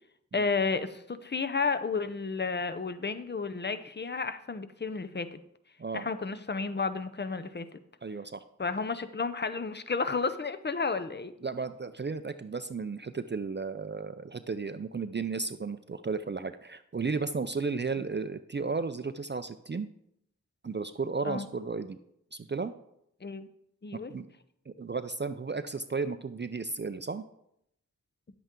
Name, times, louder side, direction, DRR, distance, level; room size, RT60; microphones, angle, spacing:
voice 1, 0.3-5.4 5.9-7.8 8.6-11.3 21.2-21.5 23.2-23.5 23.8-24.1, left 4 dB, 35° left, 11 dB, 0.6 m, -32 dB
voice 2, 8.0-8.4 11.4-19.9 20.6-22.0 22.3-22.7 23.9-24.3 24.7-27.2, right 4 dB, 40° right, 10 dB, 0.4 m, -34 dB
10.0 x 8.0 x 3.7 m, 0.75 s
wide cardioid pair, 50°, 30 cm